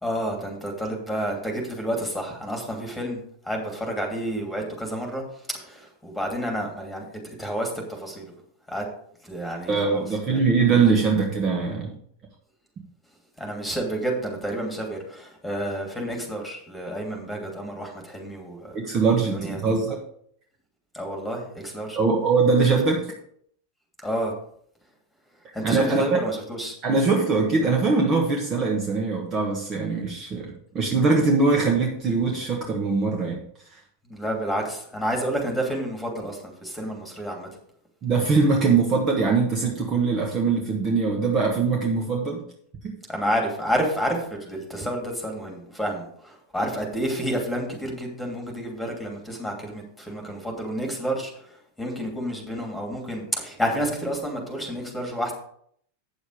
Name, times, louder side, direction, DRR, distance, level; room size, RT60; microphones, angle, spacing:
voice 1, 0.0-3.2 3.4-5.2 5.5-8.3 8.7-8.8 9.2-10.0 10.3-10.4 10.8-10.9 13.4-18.8 19.3-19.6 20.9-22.0 24.0-24.3 25.5-26.7 34.1-37.5 43.1-55.3, equal, 5° left, 2 dB, 2.8 m, -30 dB
voice 2, 9.7-11.9 18.7-20.0 21.9-23.0 25.6-26.0 26.8-33.4 33.7-33.8 38.0-42.4 42.8-42.9, right 4 dB, 30° right, 0 dB, 1.4 m, -22 dB
8.7 x 7.1 x 4.9 m, 0.65 s
figure-of-eight pair, 90°, 0 cm